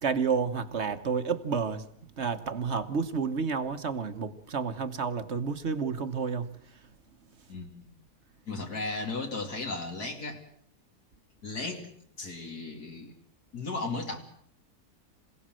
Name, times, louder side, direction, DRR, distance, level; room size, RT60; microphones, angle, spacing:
voice 1, 0.0-1.9 2.2-6.5, right 5 dB, 45° right, 10 dB, 1.4 m, -30 dB
voice 2, 7.5-7.9 8.5-10.4 11.4-11.9 12.2-13.1 13.5-14.2, left 3 dB, 70° left, 2 dB, 3.1 m, -35 dB
27.5 x 17.0 x 7.6 m, 0.66 s
omnidirectional pair, 1.7 m